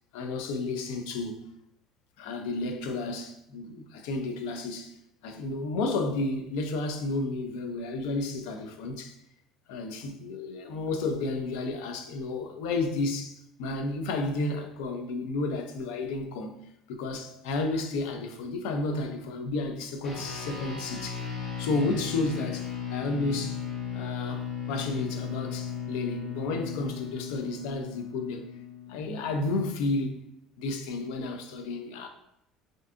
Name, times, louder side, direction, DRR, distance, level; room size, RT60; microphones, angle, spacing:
voice 1, 0.1-1.4 2.2-4.9 5.2-9.1 9.7-16.6 16.9-21.3 21.6-23.6 23.9-28.5 28.9-30.2 30.6-32.1, left 2 dB, 85° left, 0.4 m, -32 dB
sound 1, 20.0-29.7, left 7 dB, 35° left, 0.6 m, -36 dB
3.4 x 2.6 x 2.4 m
cardioid pair, 175°, 0 cm